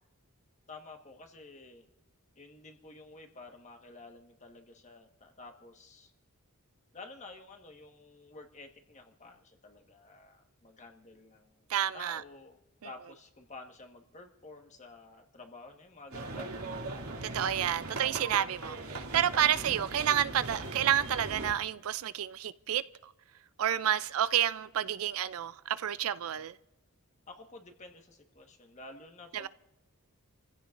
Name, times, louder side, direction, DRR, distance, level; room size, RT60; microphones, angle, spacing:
voice 1, 0.7-1.8 2.3-6.1 6.9-11.7 11.9-16.7 27.3-29.5, left 3 dB, 35° left, 1.4 m, -51 dB
voice 2, 11.7-12.2 17.3-22.8 23.6-26.5 29.3-29.5, right 10 dB, 70° right, 0.4 m, -29 dB
sound 1, 16.1-21.5, right 2 dB, 90° right, 2.6 m, -39 dB
29.5 x 15.5 x 2.5 m
head